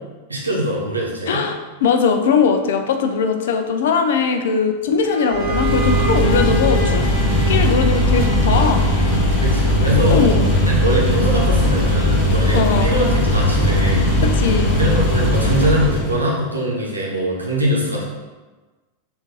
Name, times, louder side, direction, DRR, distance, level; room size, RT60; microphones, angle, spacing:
voice 1, 0.3-1.4 9.4-10.2 10.6-14.1 14.8-18.0, equal, 80° right, -3 dB, 0.8 m, -22 dB
voice 2, 1.3-7.1 7.5-8.9 10.1-10.5 12.5-12.9 14.2-14.8, left 5 dB, 60° left, 6 dB, 0.4 m, -20 dB
Bowed string instrument, 5.0-9.8, right 4 dB, 10° left, 1.3 m, -28 dB
sound 1, 5.3-16.2, left 1 dB, 40° left, 1.4 m, -18 dB
3.8 x 2.5 x 3.7 m, 1.3 s
figure-of-eight pair, 90°, 0 cm